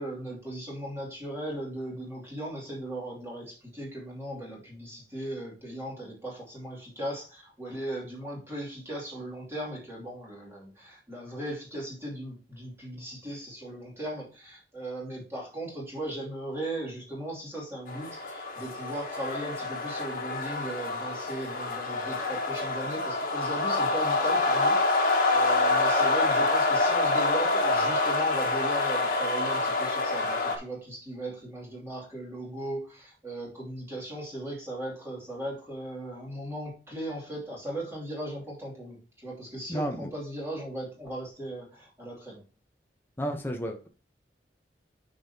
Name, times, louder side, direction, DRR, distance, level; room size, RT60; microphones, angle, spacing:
voice 1, 0.0-42.4, right 1 dB, 15° right, -5 dB, 2.6 m, -37 dB
sound 1, 17.9-30.6, left 2 dB, 50° left, 1.5 m, -26 dB
voice 2, 39.7-40.1 43.2-43.9, equal, 10° left, 3 dB, 0.8 m, -32 dB
9.1 x 5.4 x 2.8 m, 0.35 s
head